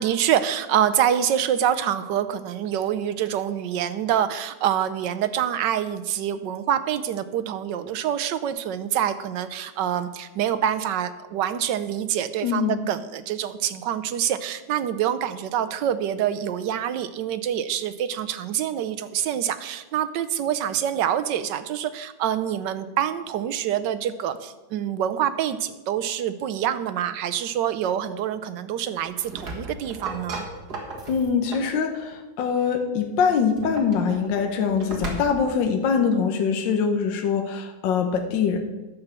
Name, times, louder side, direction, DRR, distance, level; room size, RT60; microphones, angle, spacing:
voice 1, 0.0-30.4, right 10 dB, 75° right, 12 dB, 1.2 m, -26 dB
voice 2, 12.4-12.8 31.1-38.6, left 6 dB, 70° left, 5 dB, 1.6 m, -23 dB
sound 1, 29.0-31.8 33.4-35.6, right 2 dB, 55° right, 2.2 m, -36 dB
11.0 x 7.0 x 6.8 m, 1.2 s
omnidirectional pair, 2.1 m